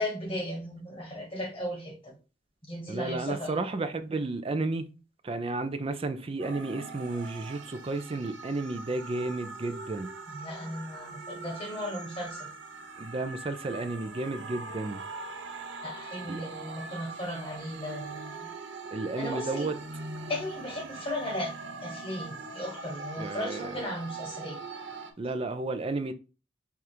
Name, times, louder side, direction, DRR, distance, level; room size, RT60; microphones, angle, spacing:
voice 1, 0.0-2.1 2.7-3.6 10.3-12.5 15.8-18.5 19.2-19.7 20.3-21.5 21.8-24.6, left 1 dB, 30° left, 1.4 m, -36 dB
voice 2, 2.9-4.9 5.2-10.1 13.0-15.0 16.3-16.4 18.9-19.8 23.2-23.8 25.2-26.1, right 2 dB, 30° right, 0.4 m, -32 dB
sound 1, 6.4-25.1, right 3 dB, 70° right, 0.6 m, -42 dB
4.8 x 2.4 x 4.3 m
head